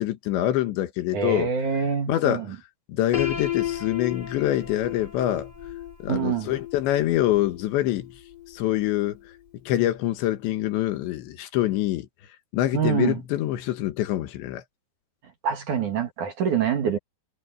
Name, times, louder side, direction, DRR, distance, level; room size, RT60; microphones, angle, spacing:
voice 1, 0.0-1.5 2.1-2.6 2.9-5.5 6.0-8.1 8.5-9.2 9.7-12.1 12.5-14.6, left 13 dB, 80° left, 3.6 m, -25 dB
voice 2, 1.1-2.6 6.1-6.5 12.7-13.2 15.4-17.0, right 7 dB, 55° right, 2.8 m, -25 dB
Piano, 3.1-9.0, left 10 dB, 25° left, 2.6 m, -33 dB
omnidirectional pair, 5.2 m